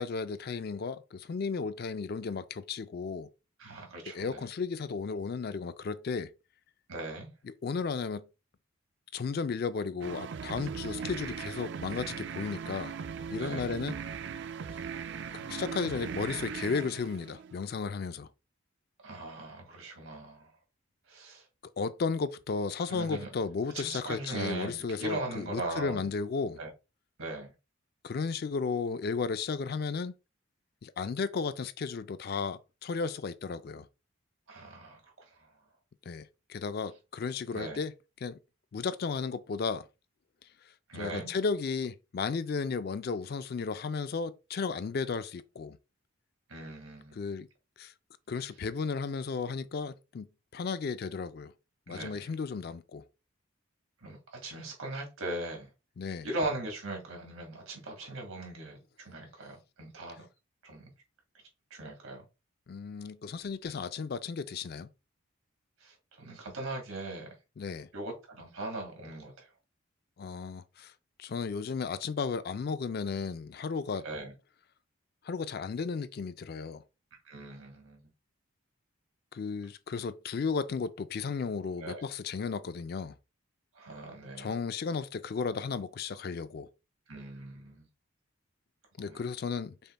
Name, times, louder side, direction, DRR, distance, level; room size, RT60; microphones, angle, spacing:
voice 1, 0.0-3.3 4.1-6.3 7.5-8.3 9.1-12.9 13.3-14.0 15.3-18.3 21.8-26.6 28.0-30.1 30.8-33.9 36.1-37.9 38.2-38.4 38.7-39.8 41.0-45.8 47.1-47.5 47.8-47.9 48.3-50.3 50.5-51.5 51.9-53.0 56.0-56.3 62.7-64.9 67.6-67.9 70.2-70.9 71.2-74.1 75.2-76.8 79.3-83.2 84.4-86.7 89.0-89.7, left 5 dB, 45° left, 0.3 m, -34 dB
voice 2, 3.6-4.4 6.9-7.3 13.4-13.7 19.0-20.5 21.1-21.4 22.9-23.3 23.7-26.1 26.6-26.7 27.2-27.5 34.5-35.5 37.5-37.8 40.9-41.3 46.5-47.2 51.9-52.3 54.0-55.7 56.2-60.3 60.6-60.9 61.7-62.3 65.8-67.3 67.9-69.5 74.0-74.3 77.2-78.1 81.8-82.0 83.7-84.6 87.1-87.9 89.0-89.2, right 2 dB, 80° right, 1.7 m, -39 dB
sound 1, 10.0-17.7, right 6 dB, 55° right, 0.3 m, -39 dB
5.4 x 2.1 x 4.0 m
head